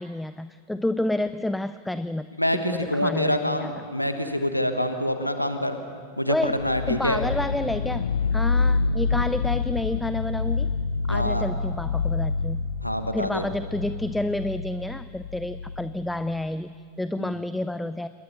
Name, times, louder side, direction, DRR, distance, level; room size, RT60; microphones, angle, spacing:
voice 1, 0.0-3.7 6.3-6.6 6.9-10.7 11.1-12.6 13.1-18.1, left 1 dB, 5° left, 13 dB, 0.4 m, -29 dB
voice 2, 2.4-5.8 6.2-7.2 11.1-11.4 12.8-13.4 17.2-17.3, left 1 dB, 90° left, 7 dB, 1.3 m, -26 dB
sound 1, 6.6-16.4, left 4 dB, 70° left, 0.6 m, -27 dB
27.0 x 21.5 x 5.5 m, 2.2 s
figure-of-eight pair, 90°, 0 cm